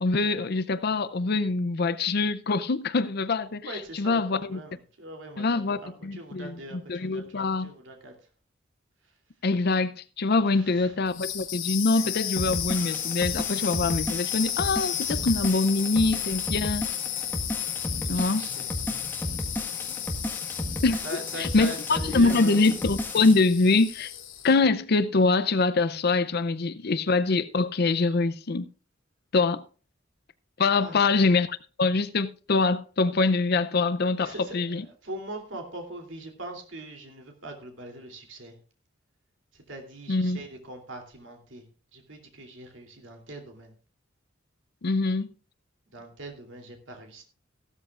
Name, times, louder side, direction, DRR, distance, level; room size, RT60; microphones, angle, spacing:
voice 1, 0.0-3.7 3.9-4.6 5.4-6.5 6.9-7.7 9.4-16.9 18.1-18.4 20.8-21.0 21.4-24.1 24.4-28.7 29.3-29.6 30.6-34.8 40.1-40.4 44.8-45.3, left 3 dB, 50° left, 0.5 m, -24 dB
voice 2, 3.6-8.1 9.0-9.1 10.4-11.0 18.0-18.7 19.6-19.8 21.0-22.6 30.8-31.2 34.2-38.6 39.5-41.6 41.9-43.7 45.9-47.2, right 1 dB, 70° right, 3.0 m, -42 dB
sound 1, 11.1-24.6, left 12 dB, 80° left, 2.6 m, -33 dB
sound 2, 12.4-23.3, left 1 dB, 10° left, 1.5 m, -34 dB
15.5 x 13.0 x 2.4 m
head